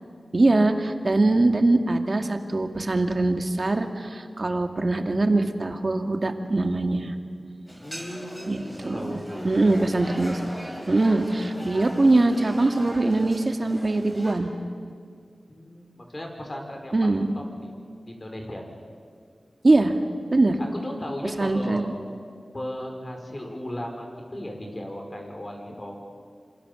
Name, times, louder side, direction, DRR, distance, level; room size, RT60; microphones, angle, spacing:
voice 1, 0.3-7.2 8.5-10.5 10.9-14.5 16.9-17.4 19.6-20.0 20.3-20.6 21.4-21.9, right 2 dB, 50° right, 5 dB, 2.2 m, -22 dB
sound 1, 7.7-14.3, equal, ahead, 7.0 m, -39 dB
voice 2, 7.8-9.8 15.5-17.7 18.0-18.6 20.6-21.9 22.5-26.0, left 1 dB, 35° left, 2 dB, 5.8 m, -36 dB
27.0 x 27.0 x 7.1 m, 2.1 s
wide cardioid pair, 60°, 0 cm